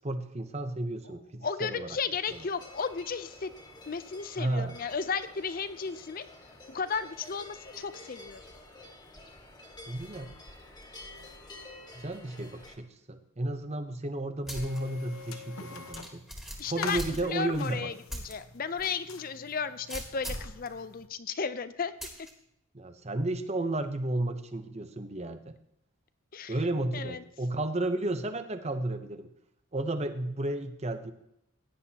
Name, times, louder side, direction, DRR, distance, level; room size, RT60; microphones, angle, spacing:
voice 1, 0.0-1.9 2.3-2.4 4.4-4.8 9.9-10.3 11.9-16.2 16.7-17.9 22.7-25.5 26.5-29.3 29.7-31.1, right 2 dB, 30° right, 9 dB, 0.8 m, -33 dB
voice 2, 1.4-3.5 3.9-6.3 6.7-8.4 16.6-21.9 26.3-26.5 26.9-27.2, left 5 dB, 40° left, 12 dB, 0.5 m, -34 dB
sound 1, 2.2-12.8, left 2 dB, 20° left, 1.7 m, -50 dB
sound 2, 14.5-21.1, left 5 dB, 75° left, 1.0 m, -46 dB
sound 3, 14.5-14.8 15.2-15.3 15.9-17.6 18.1-18.3 18.8-18.9 19.9-20.6 22.0-22.3, equal, ahead, 1.8 m, -39 dB
16.5 x 10.0 x 2.9 m, 0.78 s
head